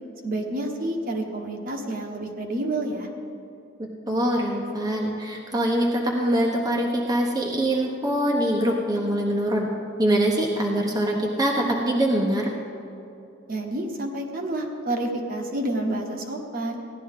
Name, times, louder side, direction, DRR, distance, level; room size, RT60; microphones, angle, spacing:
voice 1, 0.2-3.1 13.5-16.8, right 1 dB, 45° right, 1 dB, 1.3 m, -29 dB
voice 2, 4.1-9.7 10.0-12.5, right 1 dB, 20° right, -2 dB, 0.9 m, -23 dB
16.5 x 11.5 x 3.7 m, 2.7 s
head